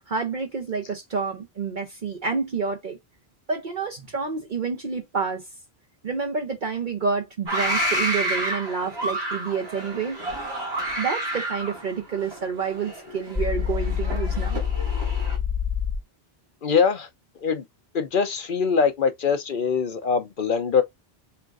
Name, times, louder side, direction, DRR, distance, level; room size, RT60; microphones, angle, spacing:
voice 1, 0.1-3.0 3.5-5.5 6.0-10.2 11.0-14.6, right 5 dB, 50° right, 0.9 m, -28 dB
sound 1, 7.5-15.4, right 1 dB, 80° right, 2.6 m, -30 dB
sound 2, 13.4-16.0, left 8 dB, 5° left, 0.5 m, -26 dB
voice 2, 16.6-17.1 17.4-17.6 17.9-20.8, left 6 dB, 60° left, 0.9 m, -23 dB
5.6 x 3.6 x 2.5 m
omnidirectional pair, 1.1 m